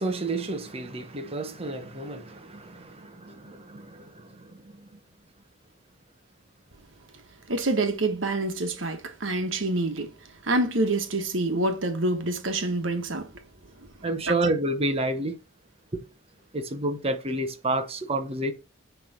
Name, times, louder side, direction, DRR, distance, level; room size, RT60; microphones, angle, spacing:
voice 1, 0.0-4.9 14.0-15.4 15.9-16.0 16.5-18.5, right 2 dB, 30° right, 1.0 m, -30 dB
voice 2, 7.5-10.1 10.4-13.3 14.3-14.4, right 2 dB, 70° right, 1.3 m, -26 dB
9.9 x 3.4 x 5.8 m
head